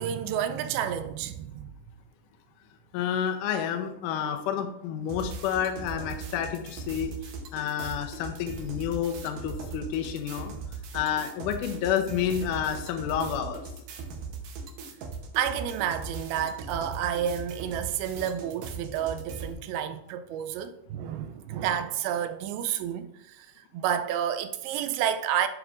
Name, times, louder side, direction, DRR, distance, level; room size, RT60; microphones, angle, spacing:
voice 1, 0.0-1.7 15.4-25.5, right 9 dB, 90° right, 2.4 m, -30 dB
voice 2, 2.9-7.2 7.5-10.5 10.9-13.6, left 9 dB, 80° left, 2.0 m, -29 dB
sound 1, 5.1-19.5, right 4 dB, 75° right, 2.4 m, -39 dB
11.0 x 4.6 x 2.5 m
omnidirectional pair, 4.2 m